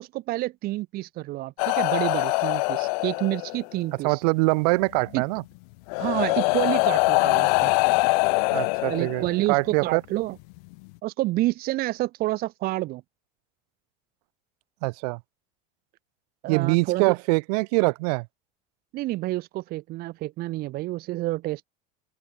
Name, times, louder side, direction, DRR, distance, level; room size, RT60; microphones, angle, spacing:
voice 1, 0.0-4.2 5.1-5.2 6.0-7.7 8.9-10.4 11.0-13.0 16.4-17.2 18.9-21.6, right 18 dB, 45° right, 1.3 m, -29 dB
sound 1, 1.6-3.7 5.1-5.2 5.9-9.5 10.6-10.7, left 32 dB, 70° left, 0.9 m, -23 dB
voice 2, 4.0-5.4 8.5-10.0 14.8-15.2 16.5-18.3, right 30 dB, 75° right, 1.6 m, -24 dB
open air
supercardioid pair, 140°, 21 cm